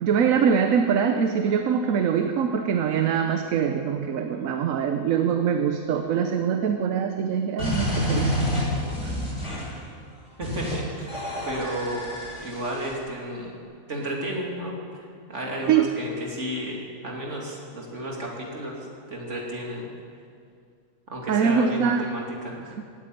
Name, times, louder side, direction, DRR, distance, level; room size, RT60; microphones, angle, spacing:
voice 1, 0.0-8.4 9.0-9.2 15.7-15.9 21.3-22.1, right 7 dB, 80° right, 7 dB, 1.2 m, -23 dB
sound 1, 7.6-9.8 10.4-10.8 11.1-12.9, equal, 60° left, 5.8 m, -28 dB
voice 2, 10.4-11.2 11.4-13.5 13.9-19.9 21.1-22.8, right 1 dB, 60° right, -1 dB, 3.2 m, -33 dB
16.5 x 9.6 x 9.2 m, 2.2 s
omnidirectional pair, 1.4 m